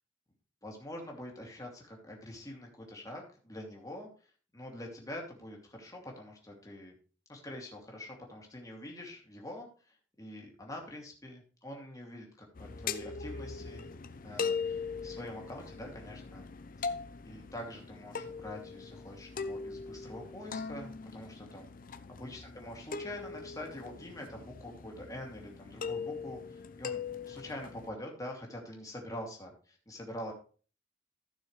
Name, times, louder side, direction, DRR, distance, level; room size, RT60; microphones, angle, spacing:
voice 1, 0.6-4.1 4.5-6.9 7.3-13.9 14.2-16.5 16.8-16.9 17.2-21.7 22.1-27.0 27.3-30.3, left 1 dB, 20° left, 0 dB, 2.5 m, -45 dB
sound 1, 12.5-27.9, left 5 dB, 50° left, 0.6 m, -40 dB
15.0 x 6.2 x 3.2 m, 0.38 s
head